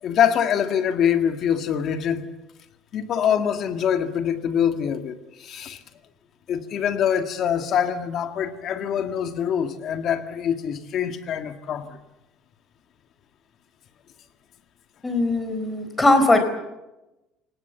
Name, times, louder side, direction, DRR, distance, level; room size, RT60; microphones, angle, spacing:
voice 1, 0.0-2.3 2.9-5.8 6.5-12.0, left 8 dB, 50° left, 1.9 m, -24 dB
voice 2, 15.0-16.5, left 2 dB, 15° left, 4.4 m, -19 dB
29.0 x 19.0 x 8.1 m
cardioid pair, 135°, 0 cm